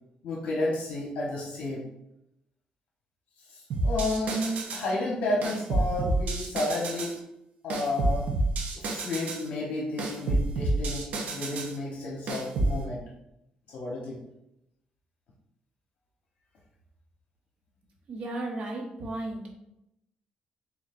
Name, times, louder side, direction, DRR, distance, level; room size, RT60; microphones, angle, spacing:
voice 1, 0.2-1.8 3.5-7.2 7.6-8.3 8.7-13.0 13.7-14.2, left 2 dB, 75° left, -3 dB, 1.0 m, -31 dB
sound 1, 3.7-4.9 5.4-7.2 7.7-9.5 10.0-11.8 12.3-12.8, right 2 dB, 70° right, 0.8 m, -29 dB
voice 2, 18.1-19.5, right 2 dB, 50° right, 0 dB, 1.1 m, -34 dB
7.1 x 2.4 x 2.5 m, 0.84 s
cardioid pair, 135°, 3 cm